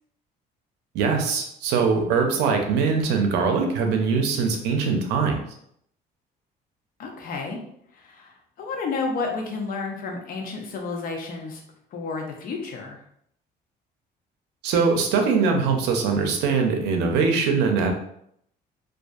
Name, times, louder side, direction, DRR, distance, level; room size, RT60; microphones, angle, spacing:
voice 1, 0.9-5.4 14.6-17.9, right 5 dB, 90° right, 3 dB, 0.5 m, -22 dB
voice 2, 7.0-7.6 7.9-11.6 11.9-13.0, left 4 dB, 60° left, 2 dB, 0.6 m, -31 dB
2.5 x 2.4 x 2.3 m, 0.71 s
cardioid pair, 110°, 17 cm